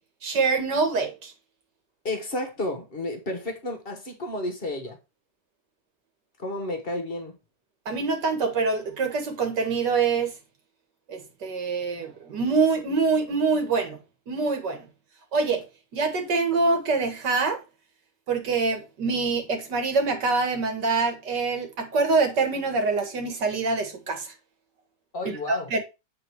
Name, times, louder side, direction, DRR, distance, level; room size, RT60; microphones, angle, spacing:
voice 1, 0.2-1.3 7.9-10.3 11.1-14.0 14.3-14.9 15.3-15.7 15.9-17.6 18.3-24.3 25.5-25.8, right 4 dB, 90° right, 2.3 m, -25 dB
voice 2, 2.0-5.0 6.4-7.4 25.1-25.7, left 1 dB, 35° left, 1.4 m, -31 dB
8.7 x 3.9 x 4.6 m
omnidirectional pair, 1.8 m